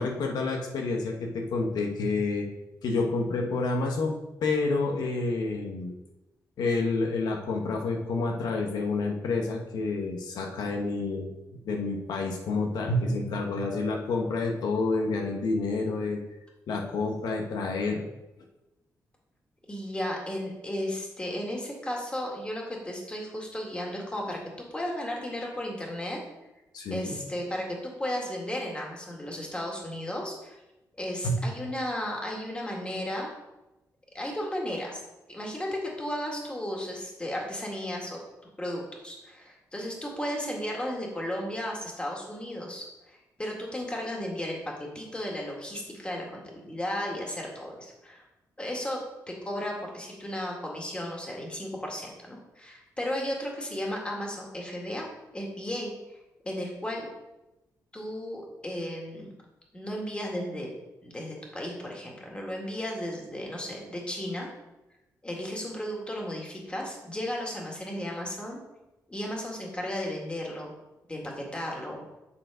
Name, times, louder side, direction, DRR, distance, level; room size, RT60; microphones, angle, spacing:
voice 1, 0.0-2.5 2.8-5.9 6.6-11.3 11.6-16.2 16.7-18.0 26.7-27.2 31.2-31.4, left 3 dB, 90° left, 2 dB, 1.3 m, -29 dB
voice 2, 19.7-24.4 24.7-26.2 26.9-30.6 31.0-33.3 34.1-35.0 35.3-38.2 38.6-44.6 44.9-48.2 48.6-49.0 49.3-55.1 55.3-56.2 56.4-57.1 57.9-59.3 59.7-60.7 61.0-64.5 65.2-68.6 69.1-70.7 71.1-72.0, left 1 dB, 15° left, -1 dB, 2.1 m, -34 dB
7.3 x 6.8 x 5.0 m, 0.99 s
wide cardioid pair, 130°, 7 cm